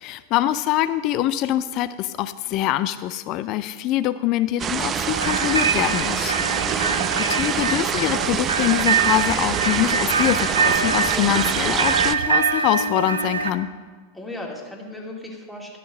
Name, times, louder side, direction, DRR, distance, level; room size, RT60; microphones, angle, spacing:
voice 1, 0.0-6.3 6.6-13.7, left 13 dB, 40° left, 14 dB, 0.4 m, -24 dB
sound 1, 4.6-12.1, right 8 dB, 25° right, 0.4 m, -25 dB
sound 2, 5.0-13.5, right 5 dB, 75° right, 0.6 m, -24 dB
voice 2, 6.4-7.0 14.1-15.8, left 1 dB, 10° left, -2 dB, 2.2 m, -37 dB
12.0 x 6.8 x 6.3 m, 1.5 s
figure-of-eight pair, 90°, 0 cm